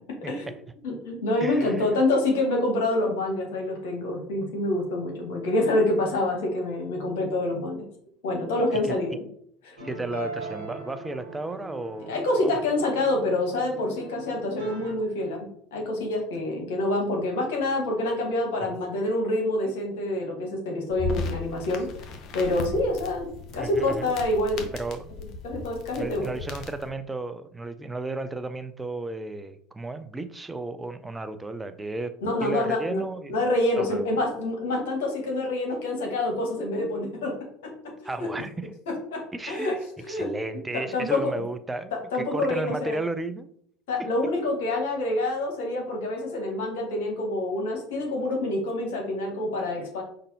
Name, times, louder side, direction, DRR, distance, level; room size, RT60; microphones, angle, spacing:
voice 1, 0.2-0.6 1.4-2.0 8.8-9.1 9.8-12.1 12.4-12.6 23.6-24.1 24.7-25.2 26.0-32.1 32.4-33.3 33.8-34.0 38.0-38.5 39.3-39.8 40.1-43.5, right 2 dB, 15° right, 10 dB, 0.4 m, -34 dB
voice 2, 0.8-7.8 8.2-9.2 9.6-9.7 12.1-21.9 22.3-23.3 23.5-24.7 25.4-26.4 32.2-33.0 33.3-37.3 37.6-38.3 38.9-40.3 40.7-41.3 41.9-43.0 43.9-50.0, left 2 dB, 70° left, 1 dB, 1.1 m, -27 dB
sound 1, 9.8-14.9, right 2 dB, 75° right, 1.2 m, -40 dB
sound 2, 20.9-26.9, left 4 dB, 50° left, 0.7 m, -36 dB
5.3 x 2.5 x 2.7 m, 0.66 s
figure-of-eight pair, 70°, 0 cm